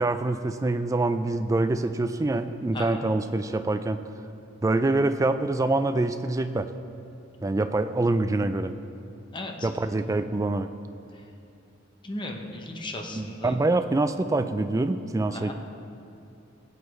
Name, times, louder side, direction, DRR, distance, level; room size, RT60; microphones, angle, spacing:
voice 1, 0.0-4.0 4.6-6.7 7.4-8.7 9.6-10.7 13.1-15.5, right 2 dB, 15° right, 9 dB, 0.3 m, -25 dB
voice 2, 2.7-3.1 9.3-9.7 12.0-13.5 15.3-15.5, left 1 dB, 25° left, 3 dB, 0.8 m, -36 dB
17.0 x 8.3 x 3.1 m, 2.6 s
head